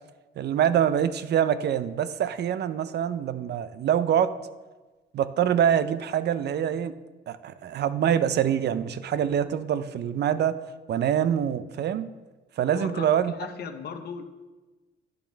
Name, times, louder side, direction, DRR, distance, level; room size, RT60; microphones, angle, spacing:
voice 1, 0.4-4.3 5.1-6.9 7.3-10.5 10.9-12.1 12.6-13.3, right 9 dB, 55° right, 13 dB, 0.5 m, -25 dB
voice 2, 12.7-14.2, left 6 dB, 55° left, 6 dB, 0.8 m, -37 dB
10.0 x 6.0 x 3.3 m, 1.2 s
cardioid pair, 90°, 20 cm